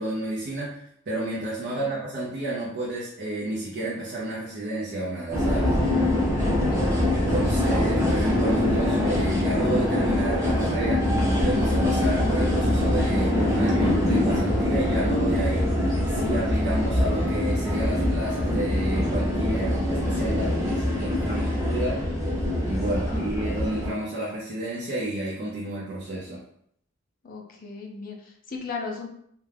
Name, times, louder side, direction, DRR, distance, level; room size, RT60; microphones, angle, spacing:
voice 1, 0.0-5.7 7.1-11.0 11.4-15.7 16.1-22.1 22.6-26.4, right 1 dB, 50° right, -6 dB, 0.5 m, -31 dB
sound 1, 5.3-23.9, left 1 dB, 15° right, 0.7 m, -23 dB
voice 2, 6.6-7.0 7.5-7.7 22.8-23.2 27.2-29.1, left 4 dB, 45° left, 1 dB, 0.5 m, -37 dB
2.3 x 2.2 x 3.3 m, 0.69 s
head